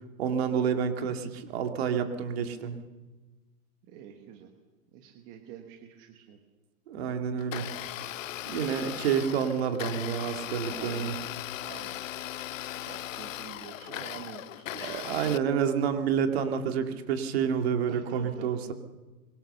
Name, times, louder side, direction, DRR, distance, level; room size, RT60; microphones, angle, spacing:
voice 1, 0.2-2.8 6.9-7.7 8.5-11.1 14.7-18.7, right 7 dB, 40° right, 6 dB, 2.4 m, -29 dB
voice 2, 3.8-4.5 4.9-6.4 10.7-11.1 11.6-12.0 12.4-12.5 12.8-15.4 17.9-18.6, right 9 dB, 20° right, 4 dB, 1.2 m, -47 dB
Domestic sounds home sounds, 7.4-15.4, left 13 dB, 55° left, 0.6 m, -38 dB
24.0 x 23.0 x 6.8 m, 1.2 s
hypercardioid pair, 175°, 46 cm